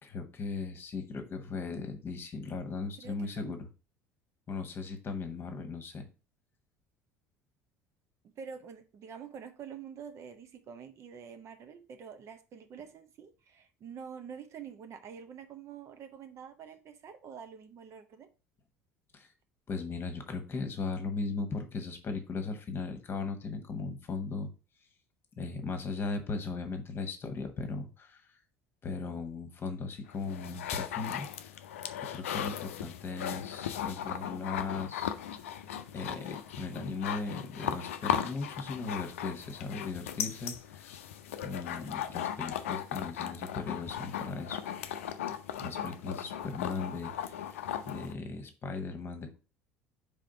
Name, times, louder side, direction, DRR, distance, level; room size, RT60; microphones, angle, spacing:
voice 1, 0.0-3.6 4.5-6.1 19.1-19.3 19.7-24.5 25.4-28.2 28.8-31.3 32.0-35.1 35.9-40.9 41.4-44.6 45.6-49.4, left 4 dB, 30° left, 1.3 m, -37 dB
voice 2, 3.0-3.6 8.2-18.3, right 7 dB, 40° right, 0.7 m, -47 dB
sound 1, 30.1-48.1, left 10 dB, 70° left, 0.5 m, -37 dB
4.9 x 3.5 x 5.6 m
figure-of-eight pair, 65°, 7 cm